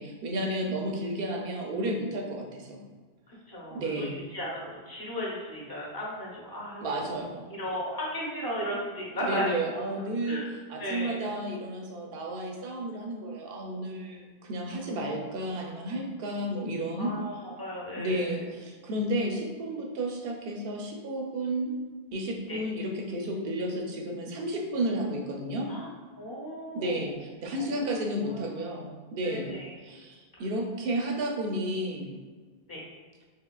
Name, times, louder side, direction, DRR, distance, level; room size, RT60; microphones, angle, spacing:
voice 1, 0.0-2.8 3.7-4.1 6.8-7.5 9.1-10.4 10.7-17.1 18.0-21.8 22.1-25.7 26.7-29.5 29.8-32.1, right 1 dB, 65° right, 1 dB, 0.8 m, -32 dB
voice 2, 3.3-7.2 7.5-9.5 10.3-10.5 10.8-11.2 14.7-14.9 17.0-18.4 22.5-22.6 25.7-25.9 26.2-27.2 27.6-27.9 28.3-28.8 29.2-29.8 32.7-32.8, equal, 25° left, -4 dB, 0.8 m, -36 dB
3.6 x 3.0 x 2.3 m, 1.4 s
omnidirectional pair, 1.1 m